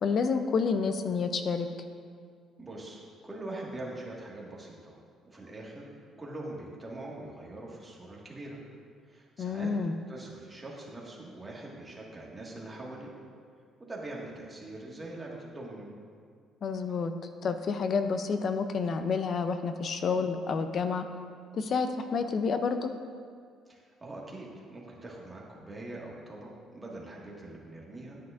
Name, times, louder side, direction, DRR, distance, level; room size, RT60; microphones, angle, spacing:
voice 1, 0.0-1.7 9.4-9.9 16.6-17.1 17.4-21.0 21.5-22.9, left 5 dB, 50° left, 8 dB, 0.5 m, -29 dB
voice 2, 2.6-5.0 5.2-5.9 6.2-8.6 9.0-9.7 10.1-13.1 13.8-15.9 23.7-28.2, right 2 dB, 15° right, -4 dB, 1.7 m, -43 dB
10.0 x 9.2 x 2.5 m, 2.1 s
cardioid pair, 115°, 0 cm